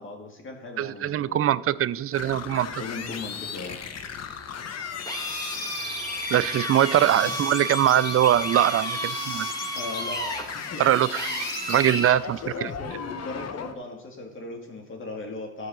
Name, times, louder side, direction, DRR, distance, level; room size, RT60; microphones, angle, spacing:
voice 1, 0.0-1.6 2.1-2.4 2.8-3.8 6.3-6.4 7.2-7.3 9.7-10.8 12.4-15.7, left 3 dB, 40° left, 2 dB, 2.2 m, -38 dB
voice 2, 0.8-2.8 6.3-9.5 10.8-11.3 11.7-12.7, right 12 dB, 50° right, 17 dB, 0.4 m, -22 dB
sound 1, 2.1-13.7, left 7 dB, 55° left, 0.9 m, -36 dB
Drill, 5.0-12.2, right 1 dB, 10° left, 1.8 m, -32 dB
12.0 x 4.6 x 6.3 m, 0.95 s
cardioid pair, 90°, 30 cm